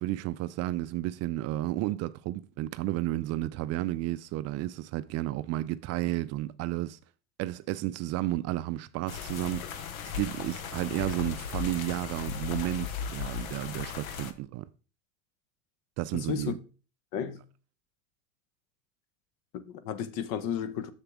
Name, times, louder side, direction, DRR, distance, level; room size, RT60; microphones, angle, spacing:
voice 1, 0.0-7.0 7.4-14.7 16.0-16.6, right 16 dB, 40° right, 0.4 m, -32 dB
sound 1, 9.1-14.3, left 7 dB, 80° left, 0.9 m, -37 dB
voice 2, 16.1-16.6 17.1-17.4 19.5-20.9, left 8 dB, 55° left, 0.9 m, -33 dB
7.2 x 6.6 x 3.6 m
hypercardioid pair, 85°, 41 cm